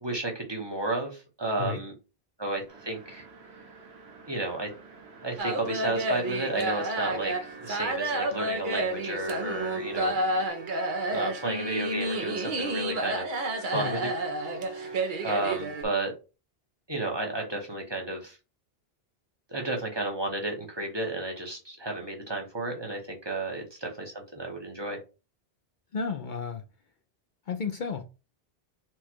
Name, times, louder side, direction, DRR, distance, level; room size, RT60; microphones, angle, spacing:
voice 1, 0.0-1.9 2.4-3.3 4.3-4.7 5.2-10.2 11.1-13.2 13.6-14.1 14.8-15.0 15.2-16.1 16.9-18.4 19.5-25.0, right 2 dB, 25° right, 1.0 m, -32 dB
sound 1, 2.7-10.5, right 4 dB, 80° right, 1.3 m, -50 dB
sound 2, 5.4-15.8, right 2 dB, 55° right, 0.9 m, -30 dB
voice 2, 13.7-14.1 25.9-26.6 27.5-28.0, left 5 dB, 55° left, 0.7 m, -32 dB
4.5 x 2.4 x 4.4 m
omnidirectional pair, 1.1 m